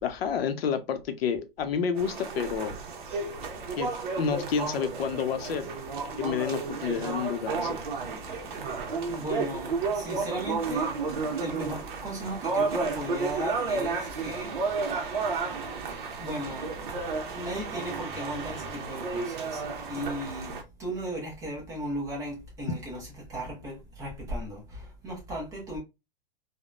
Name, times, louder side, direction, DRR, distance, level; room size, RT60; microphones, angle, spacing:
voice 1, 0.0-2.7 3.8-5.7 6.2-7.8, left 7 dB, 90° left, 0.7 m, -29 dB
sound 1, 2.0-20.6, right 4 dB, 55° right, 0.8 m, -32 dB
voice 2, 8.3-8.6 9.1-11.0 11.3-14.6 16.2-16.7 17.3-19.6 19.9-25.8, equal, 10° right, 0.5 m, -36 dB
3.5 x 2.1 x 2.4 m
supercardioid pair, 180°, 29 cm